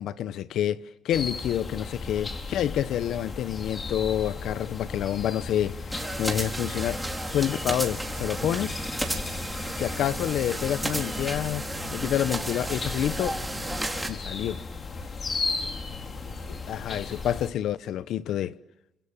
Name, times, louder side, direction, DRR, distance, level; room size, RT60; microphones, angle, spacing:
voice 1, 0.0-7.0 7.3-8.8 9.8-13.4 14.1-14.6 16.7-18.5, left 11 dB, 80° left, 1.1 m, -28 dB
sound 1, 1.1-17.5, left 4 dB, 40° left, 3.8 m, -36 dB
sound 2, 5.9-14.1, right 1 dB, 5° right, 4.2 m, -33 dB
voice 2, 15.0-17.0, right 6 dB, 70° right, 6.1 m, -54 dB
29.0 x 26.5 x 7.4 m
cardioid pair, 90°, 0 cm